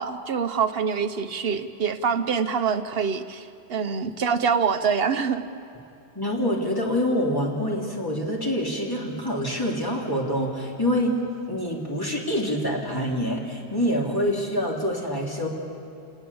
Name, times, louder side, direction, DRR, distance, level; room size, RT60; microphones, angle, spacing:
voice 1, 0.0-5.4, right 6 dB, 65° right, 10 dB, 1.2 m, -25 dB
voice 2, 6.1-11.1 11.5-15.5, equal, 20° left, -2 dB, 3.3 m, -26 dB
30.0 x 18.5 x 7.1 m, 2.6 s
omnidirectional pair, 1.1 m